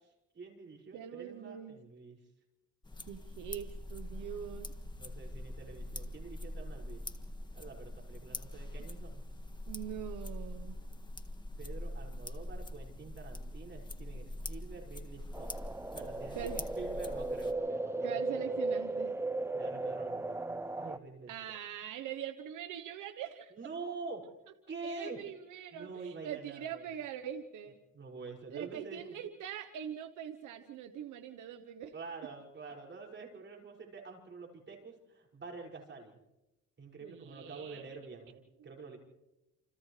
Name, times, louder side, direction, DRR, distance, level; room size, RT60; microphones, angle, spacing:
voice 1, 0.3-2.2 5.0-7.0 7.5-9.2 11.6-15.5 15.9-18.4 19.5-21.6 23.5-24.2 24.7-25.2 25.7-26.8 27.9-29.2 31.9-36.2 36.8-39.0, right 4 dB, 40° right, 0 dB, 6.3 m, -47 dB
voice 2, 0.9-1.8 3.1-4.7 9.7-10.8 16.3-16.6 18.0-19.1 21.3-23.5 24.2-24.3 24.8-27.8 28.5-31.9 37.0-38.2, right 9 dB, 80° right, 9 dB, 1.1 m, -43 dB
sound 1, 2.8-17.5, left 1 dB, 15° left, 1.8 m, -43 dB
sound 2, 15.3-21.0, right 2 dB, 10° right, 0.9 m, -36 dB
29.0 x 28.0 x 3.3 m, 0.97 s
cardioid pair, 90°, 30 cm